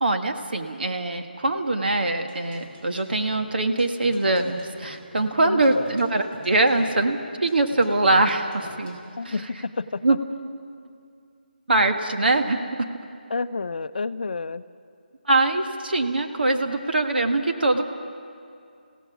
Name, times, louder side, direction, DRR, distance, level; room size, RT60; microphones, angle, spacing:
voice 1, 0.0-9.0 9.2-9.3 10.0-10.2 11.7-12.9 15.2-17.8, right 2 dB, 70° right, 5 dB, 1.7 m, -23 dB
sound 1, 2.2-9.1, equal, 25° right, 3.8 m, -46 dB
voice 2, 5.4-6.0 9.2-10.2 13.3-14.6, left 4 dB, 60° left, 13 dB, 0.6 m, -30 dB
28.5 x 16.5 x 6.2 m, 2.4 s
figure-of-eight pair, 165°, 5 cm